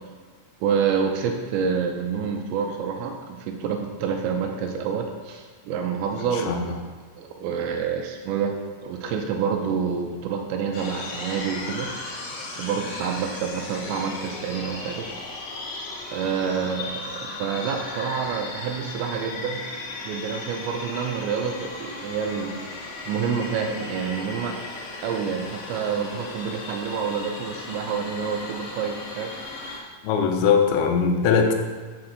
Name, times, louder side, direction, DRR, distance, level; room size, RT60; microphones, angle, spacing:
voice 1, 0.6-6.9 7.2-8.5 8.8-11.9 12.6-15.1 15.5-15.6 16.1-19.7 20.0-24.6 25.0-29.3, right 6 dB, 85° right, 3 dB, 2.9 m, -28 dB
sound 1, 10.7-29.8, left 3 dB, 75° left, 3.5 m, -36 dB
voice 2, 30.0-31.5, left 6 dB, 90° left, 3 dB, 3.1 m, -20 dB
8.4 x 4.4 x 6.5 m, 1.5 s
omnidirectional pair, 5.3 m